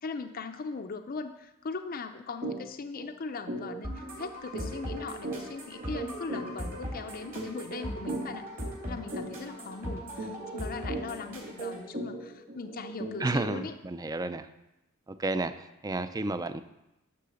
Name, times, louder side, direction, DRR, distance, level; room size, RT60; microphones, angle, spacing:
voice 1, 0.0-8.5 8.8-13.7, left 4 dB, 45° left, 7 dB, 0.5 m, -39 dB
sound 1, 2.4-2.6 2.9-3.1 3.5-13.7, right 2 dB, 65° right, 1.6 m, -39 dB
sound 2, 3.8-11.8, equal, 40° right, 2.8 m, -40 dB
voice 2, 13.2-14.5 15.1-15.5 15.8-16.6, right 2 dB, 15° right, 11 dB, 0.4 m, -31 dB
11.5 x 3.8 x 6.9 m, 0.91 s
head